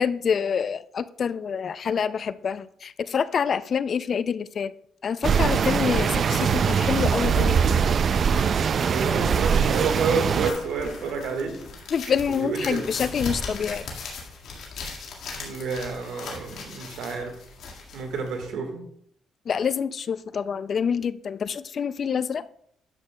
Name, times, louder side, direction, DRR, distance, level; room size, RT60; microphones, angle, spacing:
voice 1, 0.0-4.7 5.0-7.6 11.9-13.9 19.5-22.4, left 7 dB, 50° left, 0.3 m, -26 dB
sound 1, 5.2-10.5, right 6 dB, 50° right, 0.4 m, -22 dB
voice 2, 8.9-11.6 12.4-12.8 15.3-17.4 17.9-18.8, right 5 dB, 80° right, 1.6 m, -29 dB
sound 2, 10.3-18.5, left 4 dB, 75° left, 1.8 m, -38 dB
10.5 x 7.4 x 2.3 m
cardioid pair, 90°, 0 cm